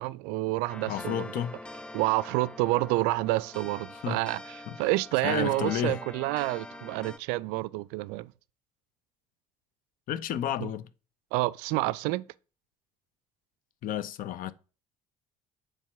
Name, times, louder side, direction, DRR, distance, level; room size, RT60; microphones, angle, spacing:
voice 1, 0.0-1.3 1.9-8.3 10.6-10.7 11.3-12.2, right 19 dB, 65° right, 0.4 m, -29 dB
sound 1, 0.7-7.2, left 2 dB, 5° left, 0.3 m, -44 dB
voice 2, 0.9-1.6 4.0-4.2 4.7-4.8 5.2-6.0 10.1-10.9 13.8-14.5, left 10 dB, 50° left, 0.7 m, -31 dB
7.2 x 3.4 x 6.0 m
hypercardioid pair, 60°, 18 cm